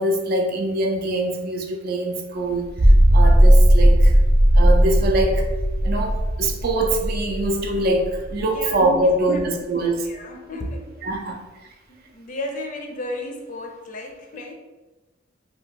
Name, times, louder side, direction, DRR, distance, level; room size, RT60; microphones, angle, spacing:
voice 1, 0.0-2.7 3.1-4.2 4.5-5.5 5.8-10.1 11.0-11.4, right 1 dB, 50° right, 4 dB, 0.4 m, -23 dB
sound 1, 2.6-9.1, equal, 75° right, 0.7 m, -16 dB
voice 2, 9.0-9.4 9.8-11.1 11.9-14.5, left 1 dB, 40° left, 2 dB, 0.5 m, -34 dB
2.8 x 2.3 x 3.5 m, 1.2 s
head